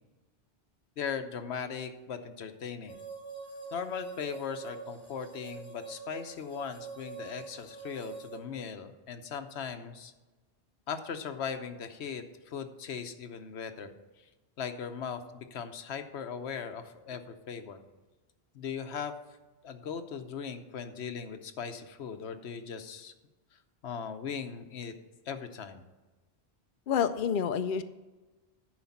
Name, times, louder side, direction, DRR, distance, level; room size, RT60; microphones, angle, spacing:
voice 1, 1.0-3.0 3.7-10.1 10.9-13.9 14.6-17.8 18.5-19.1 19.6-23.1 23.8-24.9 25.3-25.8, left 6 dB, 80° left, 9 dB, 1.1 m, -39 dB
sound 1, 2.9-8.4, right 5 dB, 5° left, 1.9 m, -45 dB
voice 2, 26.9-27.8, left 7 dB, 60° left, 10 dB, 0.6 m, -28 dB
10.5 x 5.0 x 7.2 m, 1.2 s
omnidirectional pair, 1.1 m